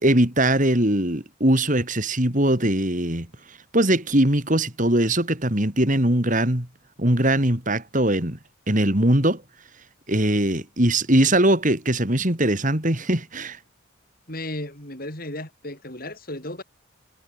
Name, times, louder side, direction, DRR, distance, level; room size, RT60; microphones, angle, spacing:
voice 1, 0.0-6.7 7.0-8.4 8.7-9.4 10.1-13.6, right 1 dB, 35° right, 3.3 m, -21 dB
voice 2, 14.3-16.6, left 1 dB, 45° left, 7.4 m, -34 dB
head